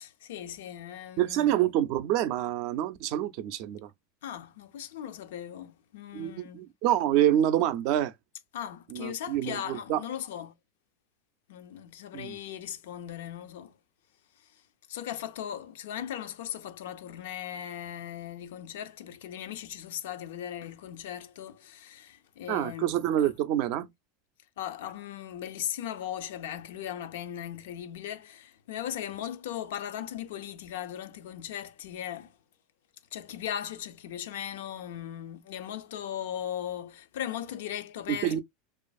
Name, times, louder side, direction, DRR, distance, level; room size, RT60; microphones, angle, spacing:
voice 1, 0.0-1.7 4.2-6.7 8.5-10.5 11.5-13.8 14.4-14.5 14.9-22.9 23.2-23.3 24.6-32.4 33.1-38.4, left 10 dB, 80° left, 0.4 m, -38 dB
voice 2, 1.2-3.9 6.1-8.1 8.9-10.0 12.1-12.4 22.5-23.9 38.1-38.4, right 12 dB, 55° right, 0.3 m, -27 dB
2.5 x 2.4 x 2.3 m
supercardioid pair, 125°, 0 cm